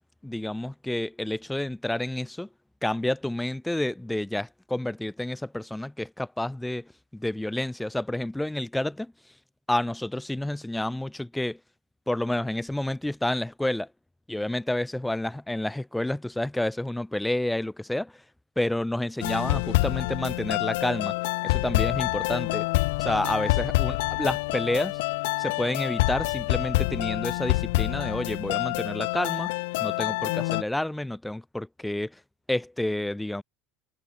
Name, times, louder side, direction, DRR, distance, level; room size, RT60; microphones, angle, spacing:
voice 1, 0.2-2.5 2.8-9.1 9.7-11.6 12.1-13.9 14.3-18.2 18.6-21.1 21.4-22.6 23.0-25.0 25.4-29.5 29.8-32.2 32.5-33.4, left 1 dB, 5° left, 4.3 m, -29 dB
sound 1, 19.2-30.6, left 24 dB, 75° left, 3.8 m, -27 dB
hypercardioid pair, 85°, 0 cm